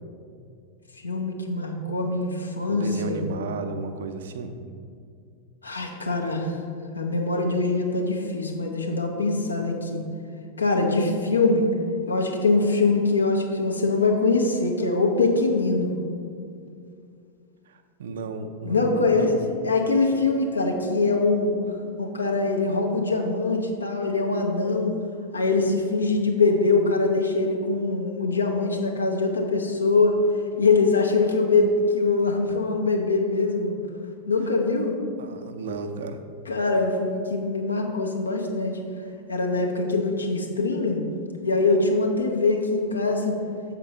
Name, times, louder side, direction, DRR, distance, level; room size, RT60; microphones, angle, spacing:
voice 1, 1.0-3.2 5.6-6.6 6.9-10.0 10.6-11.7 12.1-15.9 18.6-19.3 19.6-21.6 22.0-25.0 25.3-30.1 30.6-33.7 34.3-35.0 36.5-38.8 39.3-41.0 41.4-43.4, left 3 dB, 75° left, 1 dB, 0.9 m, -23 dB
voice 2, 2.7-4.5 17.7-19.4 35.2-36.2, right 3 dB, 60° right, 7 dB, 0.6 m, -33 dB
7.2 x 4.4 x 5.4 m, 2.4 s
figure-of-eight pair, 90°, 0 cm